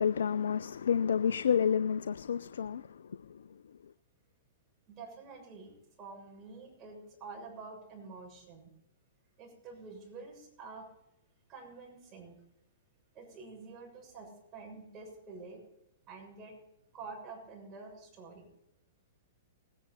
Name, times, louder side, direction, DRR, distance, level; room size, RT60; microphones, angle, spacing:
voice 1, 0.0-3.9, left 7 dB, 75° left, 0.4 m, -30 dB
voice 2, 4.9-8.7 9.4-10.9 11.5-12.4 13.1-15.6 16.0-16.6 16.9-18.5, right 4 dB, 30° right, 6.9 m, -48 dB
20.5 x 10.0 x 4.2 m
hypercardioid pair, 120°, 0 cm